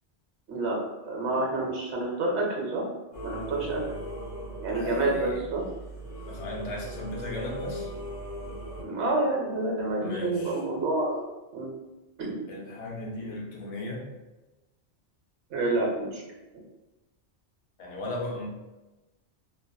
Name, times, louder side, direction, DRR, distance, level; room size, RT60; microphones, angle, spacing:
voice 1, 0.5-2.9 3.2-3.8 4.6-5.6 8.8-11.7 12.2-12.4 15.5-16.2, right 2 dB, 70° right, -2 dB, 1.0 m, -28 dB
Singing / Musical instrument, 3.1-8.8, equal, 45° left, 0.8 m, -39 dB
voice 2, 4.7-5.4 6.3-7.9 10.0-10.6 12.5-14.1 17.8-18.5, left 2 dB, 80° left, -2 dB, 1.0 m, -36 dB
2.8 x 2.4 x 2.2 m, 1.1 s
omnidirectional pair, 1.2 m